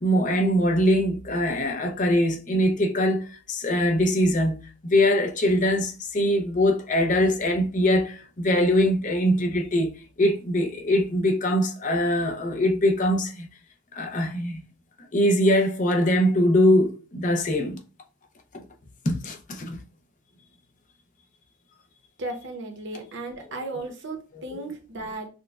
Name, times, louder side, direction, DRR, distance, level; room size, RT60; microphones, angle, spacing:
voice 1, 0.0-13.5 13.9-14.6 15.1-17.8 18.5-18.6 19.0-19.8 24.3-24.6, equal, 35° left, 0.6 m, -22 dB
voice 2, 22.2-25.3, right 2 dB, 55° right, 0.8 m, -35 dB
6.1 x 2.2 x 2.3 m
head